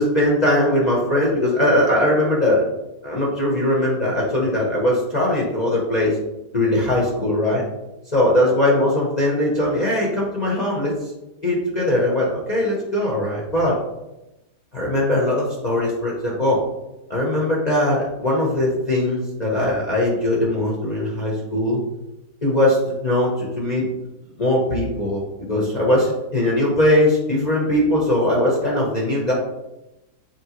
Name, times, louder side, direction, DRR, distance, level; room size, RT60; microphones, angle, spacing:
voice 1, 0.0-2.6 3.0-6.2 6.5-7.6 8.1-11.1 11.4-13.7 14.7-16.6 17.1-21.8 22.4-23.9 24.4-25.2 25.5-29.3, left 1 dB, 30° left, -4 dB, 1.1 m, -20 dB
7.9 x 4.5 x 3.1 m, 0.96 s
omnidirectional pair, 1.8 m